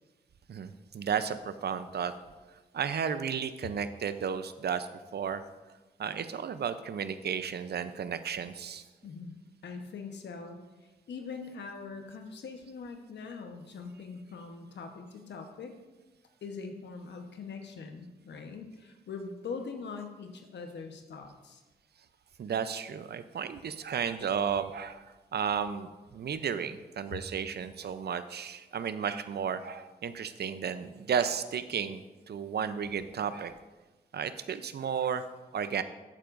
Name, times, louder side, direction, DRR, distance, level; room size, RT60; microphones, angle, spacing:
voice 1, 0.5-2.1 2.7-5.4 6.0-8.8 22.4-25.0 25.3-33.5 34.1-35.3 35.5-35.8, right 7 dB, 70° right, 12 dB, 0.6 m, -33 dB
voice 2, 9.0-9.4 9.6-15.7 16.4-21.6, left 4 dB, 80° left, 5 dB, 1.1 m, -42 dB
12.0 x 9.1 x 2.6 m, 1.2 s
supercardioid pair, 40°, 18 cm